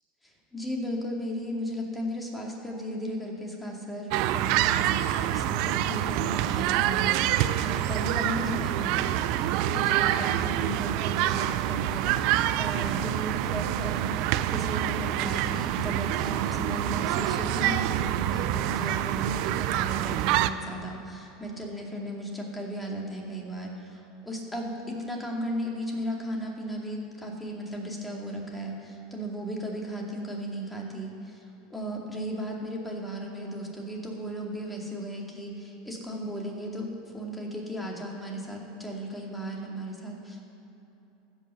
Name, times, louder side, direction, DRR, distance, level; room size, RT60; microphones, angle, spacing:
voice 1, 0.2-40.4, equal, 5° left, -1 dB, 2.3 m, -35 dB
sound 1, 4.1-20.5, right 13 dB, 60° right, 0.4 m, -26 dB
15.0 x 5.7 x 7.0 m, 3.0 s
hypercardioid pair, 100°, 0 cm